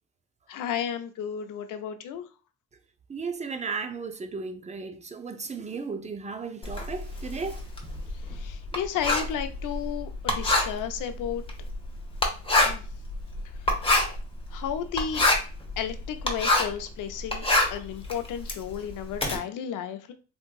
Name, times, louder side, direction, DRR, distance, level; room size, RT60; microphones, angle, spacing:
voice 1, 0.5-2.3 8.3-11.4 12.6-12.8 13.4-13.9 14.5-15.2 15.8-20.1, left 9 dB, 75° left, 0.6 m, -33 dB
voice 2, 3.1-7.6, right 4 dB, 20° right, 0.5 m, -35 dB
Writing, 6.6-16.8 17.2-19.4, left 2 dB, 15° left, 1.0 m, -26 dB
3.6 x 2.6 x 2.3 m
supercardioid pair, 65°, 32 cm